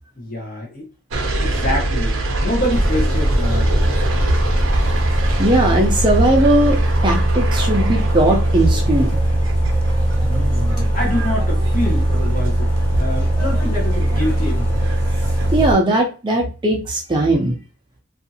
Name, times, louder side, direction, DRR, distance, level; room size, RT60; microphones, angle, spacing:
voice 1, 0.2-0.9 1.2-4.1 10.2-14.9, left 1 dB, 45° left, 0.9 m, -26 dB
sound 1, 1.1-15.6, right 1 dB, 80° right, 0.5 m, -26 dB
sound 2, 2.7-15.7, right 1 dB, 10° left, 0.8 m, -19 dB
voice 2, 5.4-6.8 7.0-9.2 15.5-17.5, right 1 dB, 20° right, 0.4 m, -18 dB
2.6 x 2.4 x 2.7 m
head